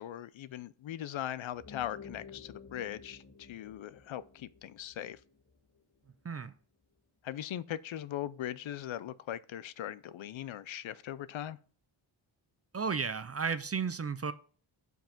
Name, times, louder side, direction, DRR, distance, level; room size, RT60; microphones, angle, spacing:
voice 1, 0.0-5.2 7.2-11.6, left 11 dB, 70° left, 0.5 m, -40 dB
sound 1, 1.5-6.3, left 5 dB, 35° left, 1.5 m, -53 dB
voice 2, 12.7-14.3, right 5 dB, 30° right, 0.4 m, -33 dB
5.4 x 4.7 x 5.8 m
wide cardioid pair, 85°, 49 cm